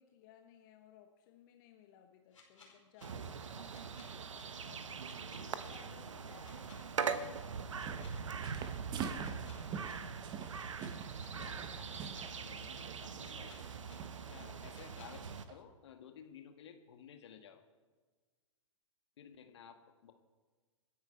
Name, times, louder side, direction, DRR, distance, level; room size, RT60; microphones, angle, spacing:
voice 1, 0.0-3.8 5.6-8.9 11.2-11.7 14.4-14.7, left 9 dB, 40° left, 4 dB, 1.3 m, -61 dB
sound 1, 2.3-3.0 3.7-4.4 5.0-5.8 6.4-7.1 7.7-8.5 9.2-9.9 10.5-11.3 11.9-12.6 13.2-13.9 14.7-15.1, left 5 dB, 75° left, 5.1 m, -60 dB
sound 2, 3.0-15.4, right 6 dB, 70° right, 1.0 m, -42 dB
voice 2, 4.6-5.8 10.4-10.8 11.3-13.8 14.1-17.6 19.2-20.1, left 8 dB, 55° left, 6 dB, 1.8 m, -56 dB
sound 3, 7.6-8.2 8.4-12.4 12.8-13.0 13.7-14.2 14.6-14.8 15.2-15.6, right 7 dB, 25° right, 1.2 m, -45 dB
26.5 x 10.5 x 4.5 m, 1.4 s
figure-of-eight pair, 110°, 17 cm